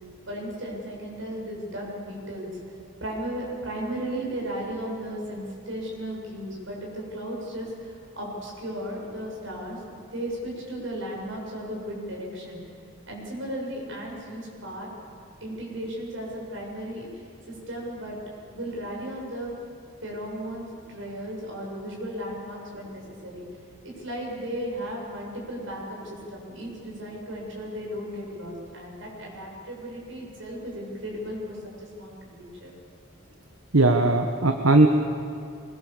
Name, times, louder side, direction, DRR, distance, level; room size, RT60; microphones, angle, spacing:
voice 1, 0.3-9.8 10.1-12.6 13.1-14.9 15.4-18.2 18.5-19.5 20.0-23.4 23.8-32.7, equal, 65° right, -2 dB, 7.2 m, -35 dB
voice 2, 33.7-34.9, right 2 dB, 85° right, 5 dB, 1.3 m, -18 dB
23.5 x 22.5 x 7.4 m, 2.4 s
head